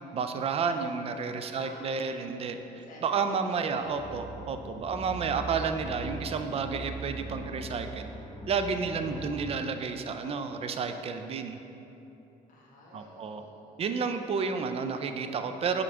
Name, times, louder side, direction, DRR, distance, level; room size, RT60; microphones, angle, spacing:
voice 1, 0.1-2.6 3.0-8.1 8.5-11.6 12.9-13.4 13.8-15.8, right 5 dB, 35° right, 7 dB, 0.4 m, -31 dB
voice 2, 1.5-2.1 2.7-3.9 12.5-13.9, left 1 dB, 50° left, -3 dB, 1.2 m, -51 dB
sound 1, 3.8-9.5, right 2 dB, 20° left, 0.6 m, -41 dB
7.6 x 3.7 x 3.4 m, 3.0 s
cardioid pair, 110°, 17 cm